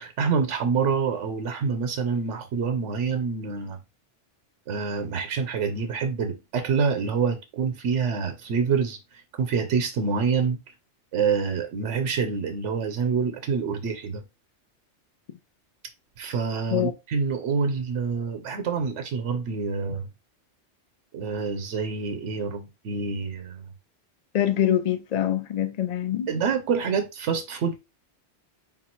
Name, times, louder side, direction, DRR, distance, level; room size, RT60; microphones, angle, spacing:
voice 1, 0.0-3.8 4.7-9.0 9.4-10.6 11.1-14.2 16.2-20.1 21.1-23.7 26.3-27.7, right 5 dB, 80° right, 1.0 m, -26 dB
voice 2, 24.3-26.3, left 11 dB, 55° left, 0.4 m, -24 dB
3.7 x 2.3 x 4.4 m
omnidirectional pair, 1.2 m